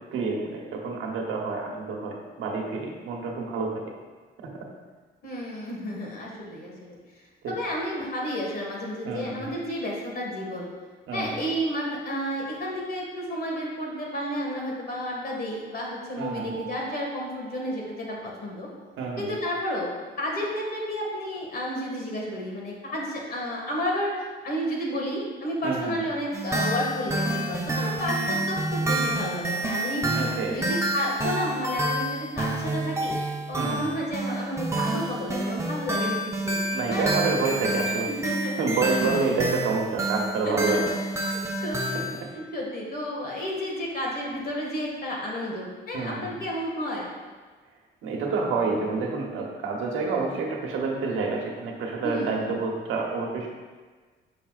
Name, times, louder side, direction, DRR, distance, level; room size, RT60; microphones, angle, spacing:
voice 1, 0.1-3.9 4.4-4.5 7.4-7.5 9.0-9.5 11.1-11.4 16.2-16.6 19.0-19.4 25.6-26.0 30.1-30.6 33.6-33.9 36.7-38.1 38.6-40.9 41.6-42.3 45.9-46.4 48.0-53.5, right 4 dB, 85° right, 0 dB, 1.1 m, -28 dB
voice 2, 5.2-7.0 7.5-10.7 11.1-18.7 19.2-19.9 20.2-30.1 30.5-33.1 33.5-36.6 36.9-37.1 38.1-38.6 39.0-39.1 40.5-40.8 41.3-42.0 42.3-47.1 52.0-52.5, equal, 50° left, -2 dB, 1.8 m, -31 dB
Mallet percussion, 16.2-18.7, right 8 dB, 55° right, 1.1 m, -44 dB
sound 1, 26.3-42.2, right 1 dB, 15° right, 0.8 m, -28 dB
6.8 x 5.8 x 2.4 m, 1.4 s
cardioid pair, 90°, 20 cm